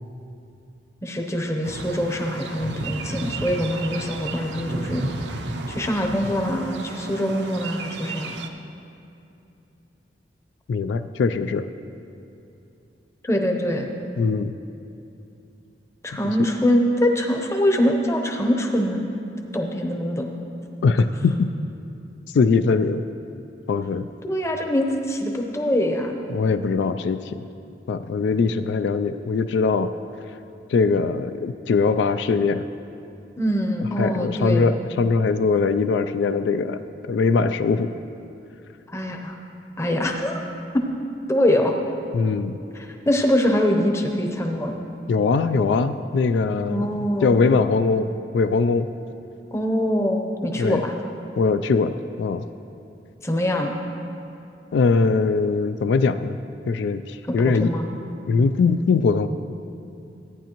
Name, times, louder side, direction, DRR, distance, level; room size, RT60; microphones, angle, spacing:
voice 1, 1.0-5.0 5.3-5.4 5.7-8.3 13.2-13.9 16.0-19.0 19.5-20.3 24.2-26.2 33.4-34.7 38.9-39.4 39.8-40.4 40.7-40.8 41.3-41.7 42.7-44.8 46.7-47.5 49.5-50.9 53.2-53.7 57.3-57.9, equal, 15° left, 2 dB, 0.7 m, -23 dB
sound 1, 1.6-8.5, right 2 dB, 80° right, 0.6 m, -33 dB
voice 2, 10.7-11.7 14.2-14.5 16.2-16.3 20.8-21.5 22.3-23.1 23.7-24.1 26.3-27.5 27.9-29.9 30.7-32.7 34.0-36.8 37.1-37.9 42.1-42.6 45.1-46.9 47.2-48.9 50.5-50.8 51.4-51.9 52.2-52.4 54.7-56.4 56.7-57.7 58.3-59.3, left 4 dB, 85° left, 10 dB, 0.3 m, -21 dB
14.0 x 9.1 x 3.0 m, 2.7 s
head